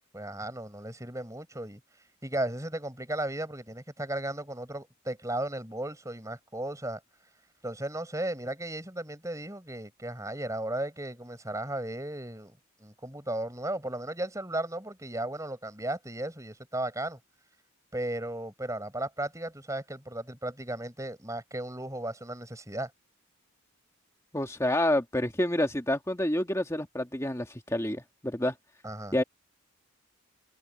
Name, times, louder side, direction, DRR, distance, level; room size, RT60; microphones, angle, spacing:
voice 1, 0.1-1.8 2.2-7.0 7.6-17.2 17.9-22.9 28.8-29.2, right 1 dB, 15° right, 5.9 m, -35 dB
voice 2, 24.3-28.5 29.1-29.2, left 1 dB, 15° left, 1.8 m, -28 dB
open air
head